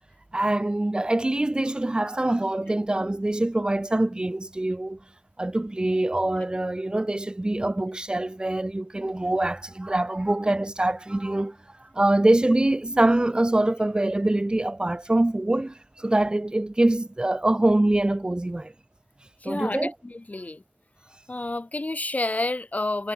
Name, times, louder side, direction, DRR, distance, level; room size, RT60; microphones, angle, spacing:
voice 1, 0.3-5.0 5.4-18.7 19.4-19.9, right 1 dB, 15° right, 0.6 m, -24 dB
voice 2, 19.4-20.6 21.3-23.1, left 2 dB, 30° left, 3.2 m, -29 dB
wide cardioid pair, 105°, 5 cm